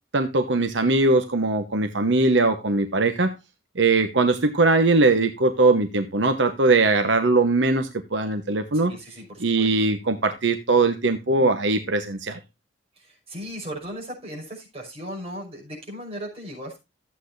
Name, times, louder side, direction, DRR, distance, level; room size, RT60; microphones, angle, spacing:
voice 1, 0.1-3.3 3.8-8.9 9.4-12.4, right 3 dB, 85° right, 8 dB, 1.1 m, -21 dB
voice 2, 8.9-9.7 13.0-16.8, equal, 35° right, -2 dB, 5.6 m, -37 dB
14.0 x 8.3 x 2.6 m, 0.24 s
head